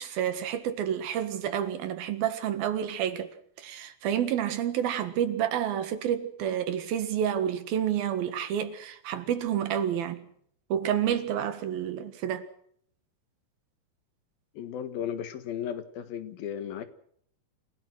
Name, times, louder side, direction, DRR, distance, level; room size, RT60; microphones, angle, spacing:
voice 1, 0.0-3.3 3.6-10.3 10.7-12.5, right 9 dB, 85° right, 3.5 m, -29 dB
voice 2, 14.6-16.9, left 9 dB, 80° left, 3.5 m, -35 dB
28.5 x 17.0 x 6.3 m
omnidirectional pair, 4.2 m